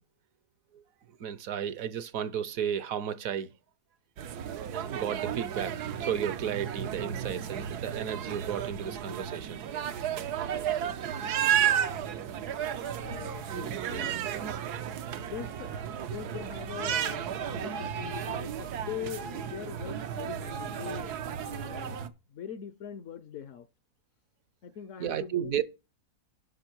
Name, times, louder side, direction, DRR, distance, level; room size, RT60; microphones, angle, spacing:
voice 1, 1.2-3.5 4.7-9.7 25.0-25.6, right 9 dB, 65° right, 1.1 m, -33 dB
sound 1, 4.2-22.1, right 9 dB, 85° right, 1.3 m, -33 dB
voice 2, 13.0-14.3 15.2-15.7 16.0-21.2 21.5-22.0 22.3-23.7 24.6-25.6, left 9 dB, 65° left, 0.9 m, -42 dB
11.5 x 5.8 x 4.5 m
omnidirectional pair, 1.7 m